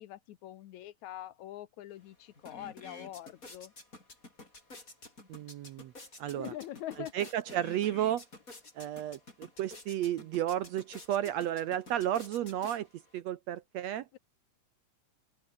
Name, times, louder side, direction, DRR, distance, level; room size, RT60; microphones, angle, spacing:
voice 1, 0.0-3.7 6.3-7.3 11.2-11.3 14.1-14.2, left 13 dB, 70° left, 2.1 m, -44 dB
sound 1, 1.9-2.0 2.3-13.2, left 2 dB, 25° left, 6.0 m, -51 dB
voice 2, 5.3-5.9 6.2-6.5 7.1-8.2 8.8-12.9 13.1-14.1, right 11 dB, 70° right, 1.7 m, -33 dB
open air
omnidirectional pair, 3.7 m